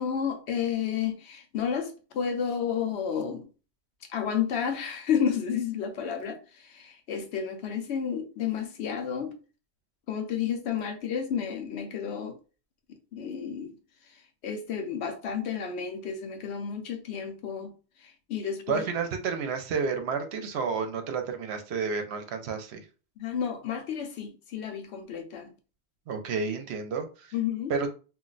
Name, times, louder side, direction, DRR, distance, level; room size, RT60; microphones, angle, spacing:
voice 1, 0.0-3.5 4.1-9.4 10.1-12.4 13.1-13.8 14.1-17.7 18.0-18.8 23.2-25.5 27.3-27.7, left 7 dB, 70° left, 0.9 m, -31 dB
voice 2, 18.7-22.9 26.1-27.3 27.7-27.9, right 5 dB, 70° right, 0.8 m, -30 dB
2.5 x 2.1 x 3.8 m
omnidirectional pair, 1.2 m